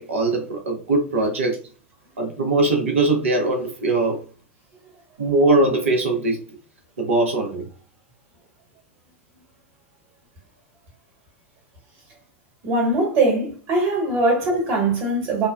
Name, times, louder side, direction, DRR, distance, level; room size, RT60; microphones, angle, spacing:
voice 1, 0.0-1.6 2.2-4.2 5.2-6.4 7.0-7.7, right 2 dB, 75° right, 0.9 m, -21 dB
voice 2, 12.6-15.5, right 2 dB, 45° right, 1.5 m, -21 dB
3.4 x 2.1 x 2.4 m
figure-of-eight pair, 90°, 7 cm